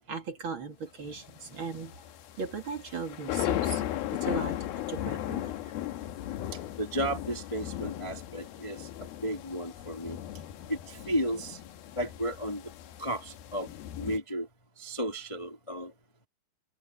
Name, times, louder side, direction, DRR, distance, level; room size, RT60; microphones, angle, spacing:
voice 1, 0.1-1.9 2.4-3.8 4.1-4.6 4.9-5.5, right 4 dB, 40° right, 2.5 m, -37 dB
sound 1, 1.1-14.2, left 13 dB, 80° left, 3.1 m, -36 dB
voice 2, 6.5-10.2 10.7-11.6 11.9-12.7 13.0-13.7 14.0-14.5 14.8-15.9, equal, 35° left, 0.4 m, -34 dB
omnidirectional pair, 4.4 m